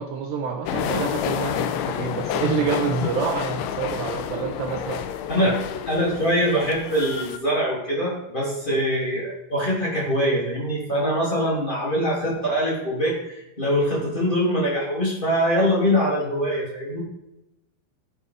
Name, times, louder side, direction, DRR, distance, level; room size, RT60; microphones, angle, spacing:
voice 1, 0.0-5.6 8.7-8.8, right 6 dB, 75° right, 3 dB, 2.5 m, -28 dB
sound 1, 0.6-7.4, left 9 dB, 85° left, 2.9 m, -29 dB
voice 2, 5.3-5.6 5.9-17.0, equal, 10° left, -5 dB, 2.7 m, -23 dB
12.5 x 8.8 x 5.0 m, 0.89 s
omnidirectional pair, 6.0 m